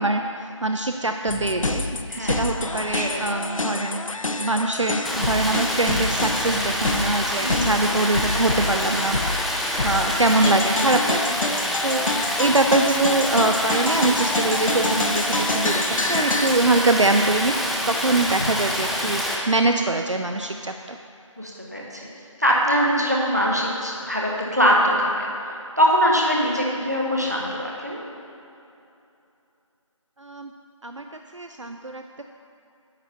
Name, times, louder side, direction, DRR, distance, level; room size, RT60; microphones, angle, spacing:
voice 1, 0.0-4.1 4.4-9.2 9.6-17.5 17.9-21.0 30.2-30.5 30.8-31.1 31.3-32.2, right 2 dB, 65° right, 5 dB, 0.4 m, -23 dB
sound 1, 1.3-16.6, left 2 dB, 80° left, 0.5 m, -28 dB
voice 2, 2.1-3.3 7.4-7.7 9.7-10.0 10.6-10.7 12.1-12.4 18.4-18.6 21.4-22.1 22.4-25.3 25.8-28.0, equal, 30° right, -2 dB, 1.0 m, -23 dB
Stream, 5.0-19.4, equal, ahead, 0.4 m, -27 dB
9.6 x 3.5 x 6.7 m, 2.8 s
figure-of-eight pair, 180°, 17 cm